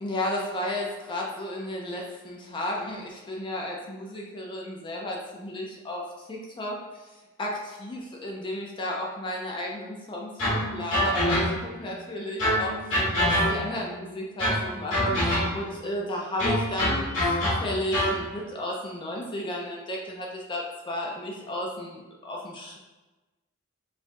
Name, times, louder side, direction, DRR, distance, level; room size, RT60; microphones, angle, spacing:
voice 1, 0.0-11.4 11.8-22.8, left 1 dB, 25° left, -1 dB, 0.4 m, -33 dB
Night String, 10.4-11.8 12.4-13.9 14.4-15.8 16.4-18.2, equal, 65° left, 1.3 m, -25 dB
4.4 x 2.3 x 2.5 m, 1.1 s
head